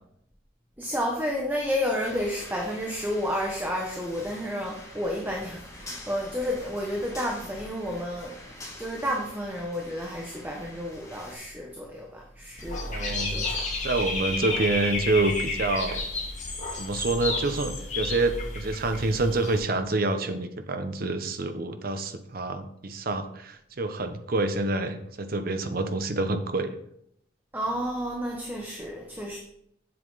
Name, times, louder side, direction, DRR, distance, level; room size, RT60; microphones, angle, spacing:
voice 1, 0.8-8.4 8.8-13.6 27.5-29.4, equal, 10° right, -1 dB, 1.0 m, -31 dB
sound 1, 2.0-11.3, left 1 dB, 15° left, 2.2 m, -46 dB
Dog / Bird, 12.6-19.6, left 3 dB, 35° left, 2.1 m, -31 dB
voice 2, 12.9-13.5 13.8-16.0 16.7-26.7, right 2 dB, 45° right, 8 dB, 0.7 m, -27 dB
7.7 x 7.5 x 4.0 m, 0.73 s
head